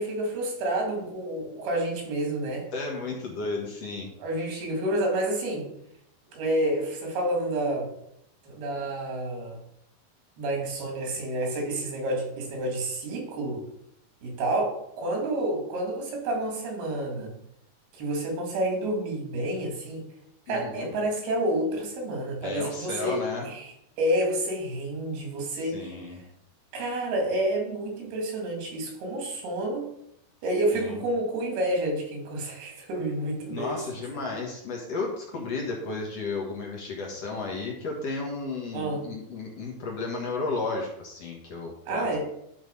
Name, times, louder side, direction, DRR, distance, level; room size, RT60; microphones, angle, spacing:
voice 1, 0.0-2.7 4.2-5.7 6.3-7.9 8.5-9.6 10.4-13.6 14.2-17.3 18.0-20.1 20.5-23.2 23.4-26.0 26.7-29.9 30.4-33.8 34.1-34.2 38.7-39.0 41.9-42.2, right 1 dB, 90° right, 1 dB, 4.4 m, -29 dB
voice 2, 2.7-4.1 20.5-20.9 22.4-23.5 25.6-26.2 30.7-31.0 33.5-42.2, left 3 dB, 55° left, -1 dB, 2.1 m, -33 dB
11.5 x 4.6 x 5.4 m, 0.75 s
omnidirectional pair, 4.3 m